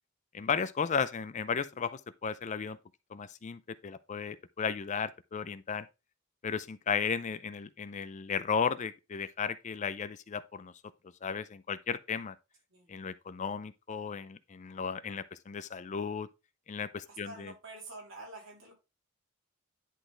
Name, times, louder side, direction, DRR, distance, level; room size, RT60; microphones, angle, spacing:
voice 1, 0.3-2.8 3.1-5.9 6.4-10.7 11.2-12.4 12.9-16.3 16.7-17.5, left 6 dB, 35° left, 0.4 m, -34 dB
voice 2, 17.1-18.7, right 2 dB, 75° right, 3.5 m, -47 dB
10.0 x 4.0 x 3.8 m
head